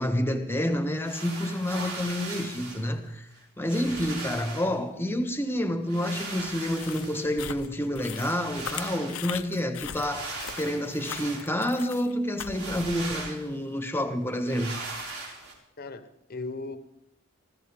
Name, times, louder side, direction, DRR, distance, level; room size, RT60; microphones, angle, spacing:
voice 1, 0.0-3.3 3.6-14.8, left 1 dB, 10° left, 1.2 m, -29 dB
sound 1, 0.9-2.9 3.4-3.5 3.7-4.8 5.9-7.5 8.1-9.3 9.9-11.5 12.5-13.5 14.4-15.5, right 3 dB, 85° right, 5.3 m, -39 dB
sound 2, 6.7-13.3, left 8 dB, 90° left, 0.7 m, -40 dB
voice 2, 15.8-16.8, left 3 dB, 45° left, 1.0 m, -38 dB
21.5 x 14.5 x 3.6 m
head